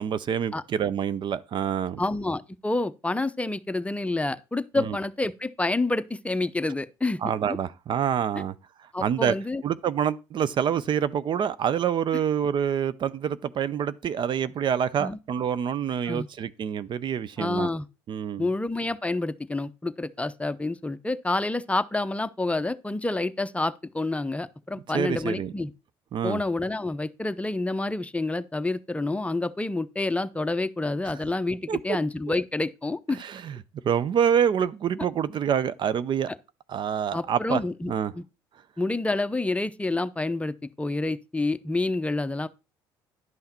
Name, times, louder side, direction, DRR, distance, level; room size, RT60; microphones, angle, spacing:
voice 1, 0.0-2.0 4.7-5.0 7.2-8.5 9.0-9.3 9.6-17.7 18.1-18.5 24.9-25.5 26.1-26.4 31.7-31.8 33.1-33.6 33.8-36.3 36.7-37.6 37.9-38.1, right 8 dB, 50° right, 0.5 m, -26 dB
voice 2, 2.0-7.2 8.9-9.6 15.0-15.2 16.1-16.3 17.4-17.9 18.4-25.7 26.2-33.2 37.1-38.2 38.8-42.5, left 2 dB, 10° left, 0.7 m, -28 dB
11.0 x 5.7 x 4.3 m
supercardioid pair, 70°, 10 cm